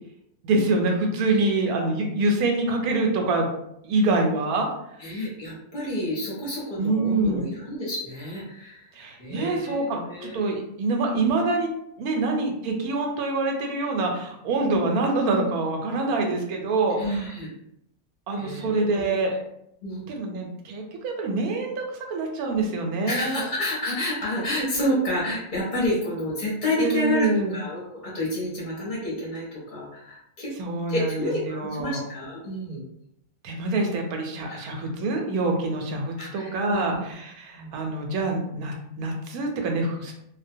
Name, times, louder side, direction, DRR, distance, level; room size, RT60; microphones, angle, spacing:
voice 1, 0.4-3.5 3.8-4.7 6.8-7.4 8.9-11.7 12.0-17.2 18.3-19.4 20.1-23.4 26.8-27.5 30.6-32.0 33.4-40.1, right 2 dB, 85° right, 2 dB, 1.1 m, -25 dB
voice 2, 1.3-1.6 5.0-8.9 9.2-10.4 11.1-11.3 12.2-12.3 14.5-14.8 17.0-17.5 18.3-19.1 19.8-20.0 23.1-27.3 27.5-30.5 30.9-32.8 34.5-35.0 36.2-36.9 37.5-37.7, left 1 dB, 45° left, -5 dB, 0.7 m, -29 dB
2.4 x 2.1 x 2.6 m, 0.77 s
omnidirectional pair, 1.5 m